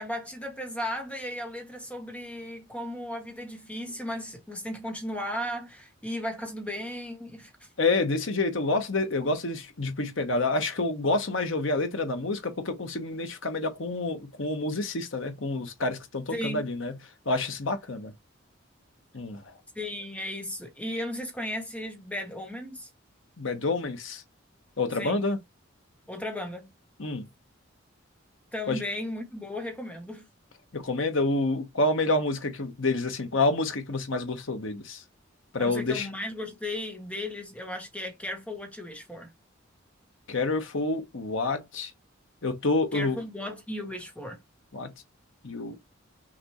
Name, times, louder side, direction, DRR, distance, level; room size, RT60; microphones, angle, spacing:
voice 1, 0.0-7.7 16.3-16.7 19.7-22.9 25.0-25.3 26.1-26.7 28.5-30.3 35.6-39.3 42.9-44.4, left 1 dB, 5° left, 1.1 m, -35 dB
voice 2, 7.8-16.9 17.3-18.1 19.1-19.4 23.4-24.2 24.8-25.4 27.0-27.3 28.7-28.8 30.7-35.0 35.5-36.1 40.3-41.9 42.4-43.2 44.7-44.9 45.4-45.8, left 2 dB, 75° left, 1.1 m, -28 dB
5.9 x 2.6 x 3.0 m
head